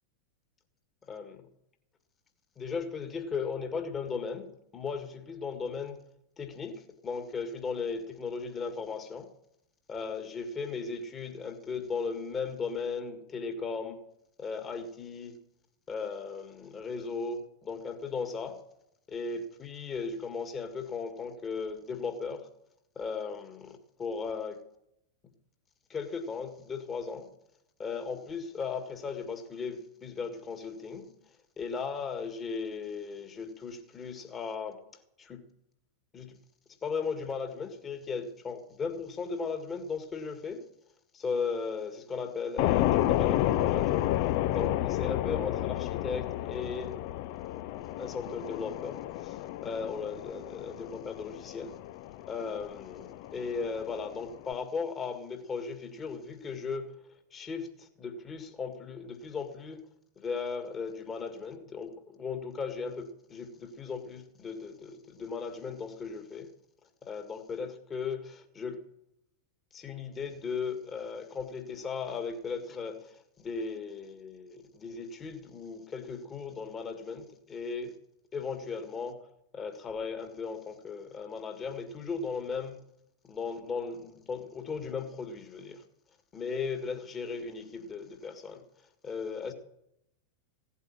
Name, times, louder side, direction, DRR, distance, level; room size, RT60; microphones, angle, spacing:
voice 1, 1.1-1.5 2.6-6.0 6.4-9.3 9.9-14.0 14.4-15.4 15.9-18.6 19.1-22.5 23.0-24.6 25.9-27.3 27.8-31.1 31.6-34.8 35.2-35.5 36.1-36.4 36.8-40.6 41.1-46.9 48.0-51.8 52.3-56.9 57.3-59.8 60.2-66.5 67.0-68.8 69.7-78.0 78.3-79.2 79.5-82.8 83.2-85.8 86.3-88.6 89.0-89.5, left 5 dB, 25° left, 1.9 m, -37 dB
sound 1, 42.6-54.5, left 14 dB, 45° left, 0.6 m, -31 dB
16.5 x 8.4 x 7.4 m
figure-of-eight pair, 90°, 0 cm